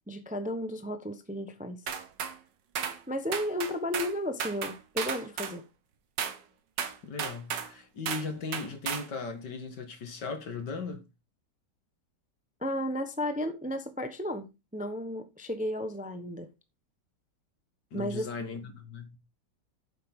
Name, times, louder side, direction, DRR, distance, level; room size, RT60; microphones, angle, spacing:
voice 1, 0.1-1.8 3.1-5.6 12.6-16.5 17.9-18.5, left 1 dB, 5° right, 0.7 m, -34 dB
sound 1, 1.9-2.4 2.8-3.0 3.3-4.1 4.4-5.6 6.2-6.4 6.8-7.7 8.1-8.3 8.5-9.1, right 7 dB, 80° right, 1.8 m, -34 dB
voice 2, 7.0-11.1 17.9-19.2, left 4 dB, 75° left, 2.5 m, -38 dB
9.5 x 7.7 x 3.7 m
omnidirectional pair, 1.9 m